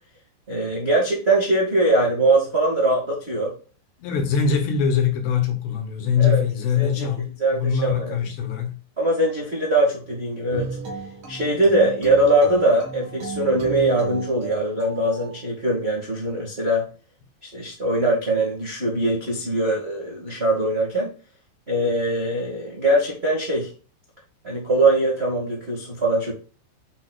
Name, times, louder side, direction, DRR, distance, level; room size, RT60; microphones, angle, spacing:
voice 1, 0.5-3.5 6.2-6.4 6.7-7.1 7.4-8.2 9.0-10.7 11.3-16.8 17.4-21.1 21.7-23.7 24.4-26.3, right 2 dB, 60° right, 0.6 m, -22 dB
voice 2, 4.0-8.7, left 7 dB, 75° left, 3.6 m, -23 dB
sound 1, 10.5-15.4, right 4 dB, 75° right, 1.1 m, -34 dB
7.5 x 6.2 x 2.4 m
omnidirectional pair, 5.2 m